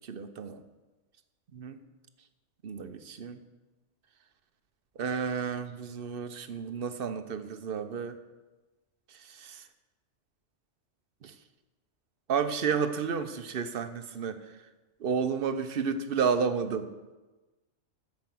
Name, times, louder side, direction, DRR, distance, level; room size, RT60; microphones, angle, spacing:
voice 1, 0.1-0.6 1.5-1.8 2.6-3.4 5.0-8.2 9.4-9.6 11.2-11.3 12.3-14.4 15.0-16.9, right 6 dB, 55° right, 10 dB, 0.9 m, -31 dB
13.5 x 5.2 x 7.6 m, 1.2 s
omnidirectional pair, 1.2 m